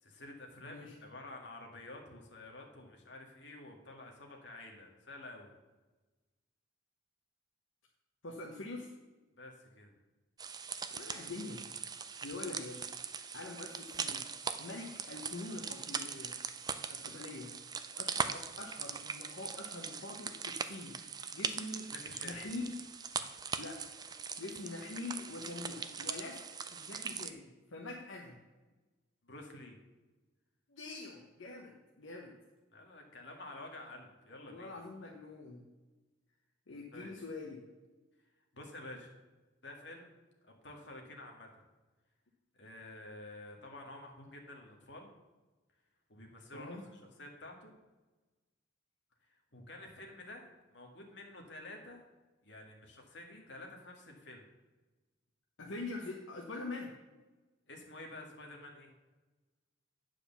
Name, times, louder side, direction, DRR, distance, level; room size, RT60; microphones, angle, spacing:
voice 1, 0.0-5.5 9.4-9.9 21.9-22.4 29.2-29.8 32.7-34.7 36.9-37.1 38.5-39.1 39.6-40.1 40.6-41.5 42.6-45.1 46.1-47.7 49.3-52.0 52.4-54.5 57.7-58.9, left 2 dB, 60° left, 1 dB, 1.8 m, -50 dB
voice 2, 0.6-0.9 8.2-8.9 10.9-11.6 12.2-12.9 13.3-14.2 14.6-16.4 16.9-17.5 18.0-21.0 21.3-21.9 22.2-22.8 23.6-23.9 24.4-26.4 26.7-28.4 30.7-32.3 34.3-35.6 36.7-37.6 46.5-46.9 55.6-56.9, left 2 dB, 75° left, 0 dB, 1.0 m, -44 dB
sound 1, 10.4-27.3, right 6 dB, 20° right, 0.3 m, -41 dB
9.1 x 4.9 x 6.9 m, 1.2 s
head